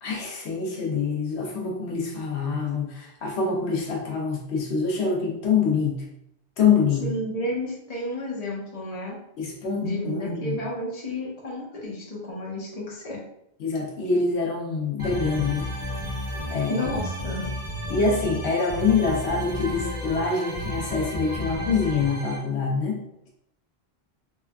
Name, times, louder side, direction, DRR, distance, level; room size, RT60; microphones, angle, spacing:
voice 1, 0.0-6.0 6.6-7.1 9.4-10.6 13.6-15.7 16.5-16.8 17.9-23.0, left 5 dB, 90° left, -1 dB, 1.0 m, -25 dB
voice 2, 7.0-9.2 9.8-13.2 16.7-17.5, left 1 dB, 40° left, -4 dB, 1.0 m, -31 dB
sound 1, 15.0-22.4, equal, 45° right, 1.1 m, -32 dB
4.2 x 2.4 x 2.2 m, 0.78 s
omnidirectional pair, 1.1 m